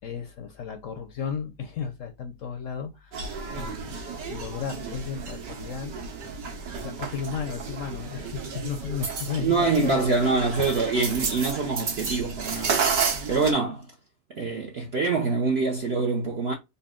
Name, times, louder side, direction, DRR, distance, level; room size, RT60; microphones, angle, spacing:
voice 1, 0.0-4.0 4.3-5.9 6.7-10.0, left 6 dB, 65° left, 0.8 m, -34 dB
sound 1, 3.1-13.5, right 5 dB, 85° right, 1.7 m, -32 dB
voice 2, 9.4-13.9 14.3-16.5, right 4 dB, 60° right, 0.7 m, -25 dB
4.1 x 2.2 x 3.7 m
omnidirectional pair, 1.8 m